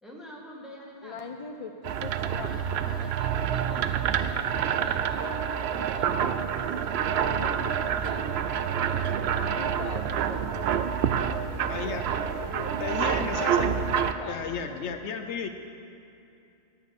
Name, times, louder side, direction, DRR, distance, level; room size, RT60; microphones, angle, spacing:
voice 1, 0.0-1.4 2.4-6.9 7.8-8.3 9.4-9.5, equal, ahead, -4 dB, 1.8 m, -46 dB
voice 2, 1.0-2.5 7.0-7.7 8.0-8.2 9.2-13.6 14.0-15.0, left 5 dB, 50° left, 4 dB, 0.4 m, -42 dB
sound 1, 1.8-14.1, right 8 dB, 65° right, 0.8 m, -27 dB
voice 3, 11.7-12.0 12.3-12.4 12.8-13.7 14.3-15.5, left 6 dB, 70° left, 7 dB, 0.9 m, -33 dB
11.0 x 9.6 x 6.1 m, 2.7 s
omnidirectional pair, 1.2 m